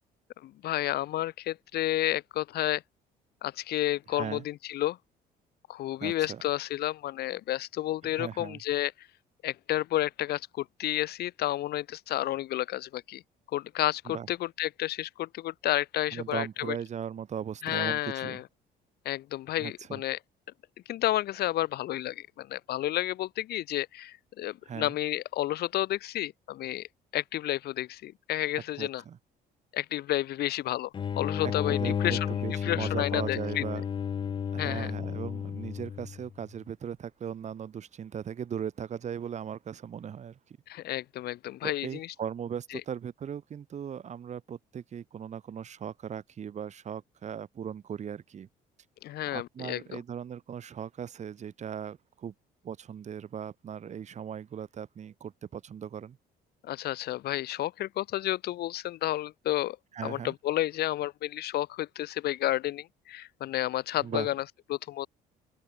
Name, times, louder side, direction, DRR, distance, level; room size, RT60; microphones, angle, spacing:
voice 1, 0.4-2.8 3.4-5.0 5.7-9.1 9.4-13.2 13.5-16.8 17.6-18.4 19.1-20.2 20.9-26.9 27.1-29.0 29.7-30.9 31.2-32.4 32.6-33.6 34.6-34.9 40.7-42.1 42.7-42.8 49.0-50.0 56.6-59.8 60.0-64.4 64.7-65.1, left 14 dB, 70° left, 2.3 m, -31 dB
voice 2, 4.1-4.4 6.0-6.4 8.0-8.6 14.1-14.3 16.1-18.4 19.6-20.0 24.6-24.9 28.8-29.2 31.4-33.8 34.5-40.6 41.6-48.5 49.3-52.3 52.6-56.2 59.9-60.3 64.0-64.3, right 8 dB, 45° right, 2.3 m, -38 dB
sound 1, 30.9-36.3, left 7 dB, 30° left, 0.4 m, -32 dB
open air
cardioid pair, 110°, 17 cm